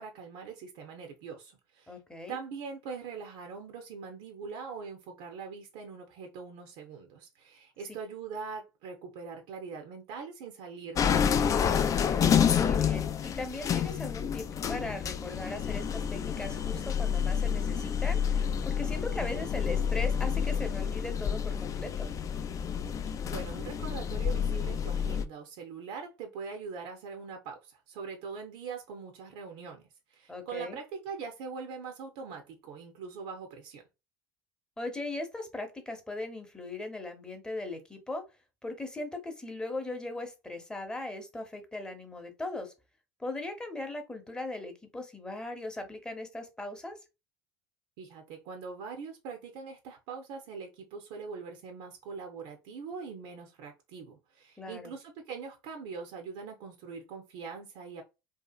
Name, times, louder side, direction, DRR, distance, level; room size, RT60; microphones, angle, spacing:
voice 1, 0.0-2.0 2.3-11.8 23.3-29.8 30.1-33.8 48.0-58.0, right 5 dB, 65° right, 0.5 m, -42 dB
voice 2, 1.9-2.4 12.5-22.1 30.3-30.8 34.8-38.2 38.6-42.7 43.2-47.0 54.6-54.9, left 2 dB, 10° left, 0.8 m, -39 dB
sound 1, 11.0-25.3, left 7 dB, 30° left, 0.3 m, -29 dB
2.7 x 2.4 x 2.3 m
hypercardioid pair, 70°, 10 cm